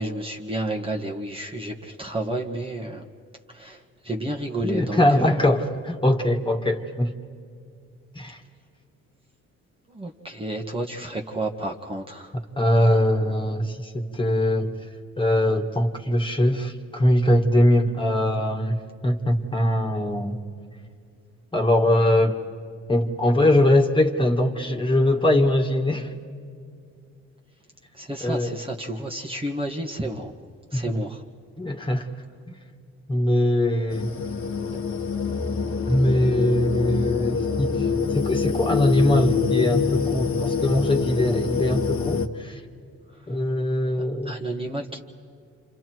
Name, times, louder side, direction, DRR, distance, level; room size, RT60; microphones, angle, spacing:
voice 1, 0.0-3.0 3.5-3.8 4.0-5.4 9.9-12.3 28.0-30.3 30.7-31.2 44.2-45.0, right 1 dB, 20° right, 1 dB, 1.8 m, -31 dB
voice 2, 4.6-7.1 8.1-8.4 12.6-14.8 15.2-20.4 21.5-22.3 22.9-26.1 28.2-28.6 30.7-31.0 31.6-32.1 33.1-34.1 35.9-37.9 38.1-42.6 43.3-44.4, left 1 dB, 15° left, 2 dB, 2.2 m, -22 dB
sound 1, 33.9-42.3, left 5 dB, 45° left, 1.6 m, -25 dB
29.5 x 27.0 x 4.7 m, 2.4 s
cardioid pair, 90°, 30 cm